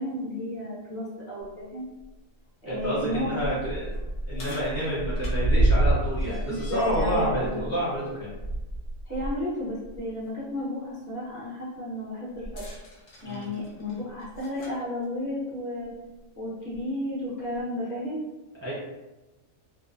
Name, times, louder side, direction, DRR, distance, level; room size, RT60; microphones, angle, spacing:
voice 1, 0.0-1.8 2.7-3.4 6.5-7.7 9.1-12.6 13.2-15.9 16.4-18.2, left 1 dB, 40° left, -9 dB, 0.9 m, -33 dB
sound 1, 1.4-1.5 2.0-2.1 2.7-9.4 9.8-10.0 12.4-14.8 15.8-15.9 16.7-16.8, right 1 dB, 80° left, 1.1 m, -29 dB
voice 2, 2.6-3.9 4.3-8.3 13.2-13.5 18.6-18.7, equal, 20° right, -9 dB, 0.5 m, -29 dB
2.6 x 2.1 x 2.5 m, 1.1 s
omnidirectional pair, 1.3 m